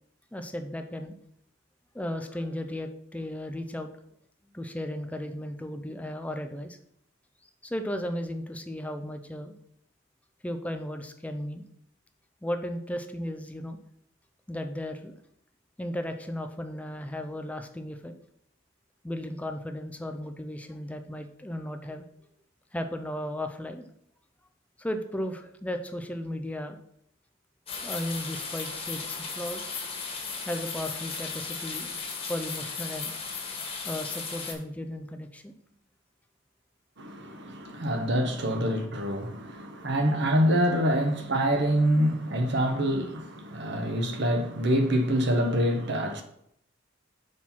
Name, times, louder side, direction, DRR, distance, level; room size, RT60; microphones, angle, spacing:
voice 1, 0.3-1.1 1.9-3.9 4.5-6.8 7.6-9.6 10.4-11.6 12.4-13.8 14.5-15.1 15.8-18.1 19.0-22.0 22.7-23.9 24.8-26.8 27.8-29.7 30.5-31.9 32.3-33.1 33.6-35.5, left 1 dB, 5° left, 0.4 m, -35 dB
sound 1, 27.7-34.5, left 5 dB, 30° left, 1.4 m, -36 dB
voice 2, 37.0-46.2, equal, 60° right, 1.0 m, -26 dB
6.2 x 4.4 x 5.8 m
head